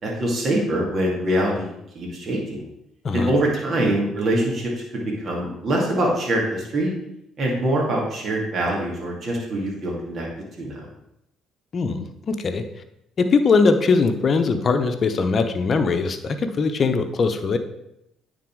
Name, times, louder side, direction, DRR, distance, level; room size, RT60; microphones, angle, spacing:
voice 1, 0.0-1.7 1.9-2.6 3.1-6.9 7.4-10.3 10.6-10.9, right 1 dB, 50° right, -2 dB, 2.3 m, -24 dB
voice 2, 11.7-12.6 13.2-17.6, left 4 dB, 45° left, 8 dB, 0.8 m, -21 dB
9.3 x 4.2 x 4.7 m, 0.83 s
hypercardioid pair, 55°, 0 cm